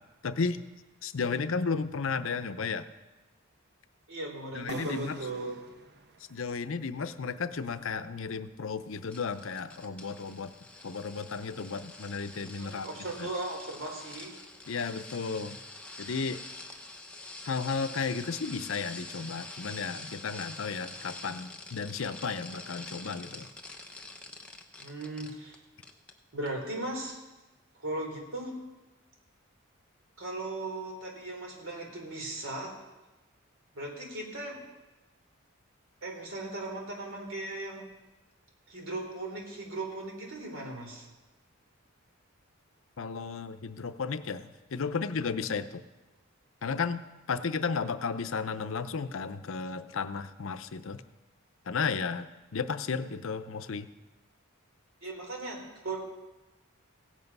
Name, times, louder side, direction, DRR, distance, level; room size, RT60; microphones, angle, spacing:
voice 1, 0.2-0.7 1.0-2.8 4.5-5.2 6.3-10.5 10.8-12.9 13.2-13.3 14.7-15.6 16.0-16.4 17.4-23.5 43.0-45.8 46.6-47.0 47.3-51.0 51.7-53.9, left 5 dB, 70° left, 11 dB, 0.6 m, -33 dB
voice 2, 4.1-5.6 12.5-14.4 24.8-25.6 26.3-27.2 27.8-28.6 30.2-32.7 33.7-34.6 36.0-37.9 38.7-41.1 55.0-56.0, right 2 dB, 70° right, 1 dB, 3.1 m, -37 dB
sound 1, 4.7-8.3, right 2 dB, 50° right, 0.9 m, -47 dB
sound 2, 9.1-25.6 25.8-26.1 26.5-26.6, left 2 dB, 5° left, 0.9 m, -46 dB
16.5 x 8.3 x 5.4 m, 1.1 s
head